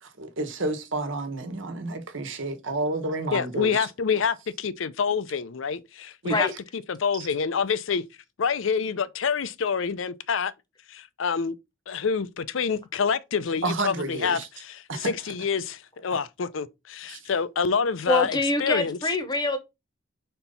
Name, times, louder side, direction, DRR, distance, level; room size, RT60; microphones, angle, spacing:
voice 1, 0.0-3.9 6.2-6.4 7.1-7.3 13.6-14.5 14.9-15.1 17.1-17.2, right 2 dB, 75° right, 1.3 m, -30 dB
voice 2, 3.3-8.0 8.4-10.5 10.9-11.5 11.9-19.0, left 6 dB, 75° left, 0.5 m, -27 dB
voice 3, 18.1-19.6, left 2 dB, 20° left, 0.9 m, -25 dB
4.4 x 3.9 x 5.5 m
head